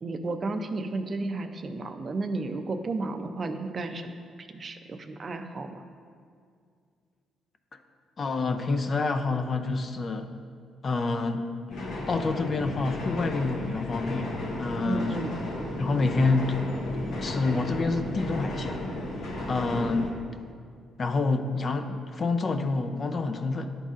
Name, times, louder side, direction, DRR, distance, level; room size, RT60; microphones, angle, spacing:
voice 1, 0.0-4.1 4.4-5.8 14.8-15.4, right 3 dB, 40° right, 7 dB, 0.5 m, -33 dB
voice 2, 8.2-10.3 10.8-11.5 12.1-14.3 14.6-15.2 15.8-16.8 17.2-18.9 19.5-20.1 21.0-23.8, left 3 dB, 40° left, 7 dB, 0.5 m, -27 dB
sound 1, 11.7-20.1, left 1 dB, 80° left, 1.1 m, -34 dB
11.5 x 3.9 x 2.5 m, 2.2 s
cardioid pair, 90°, 0 cm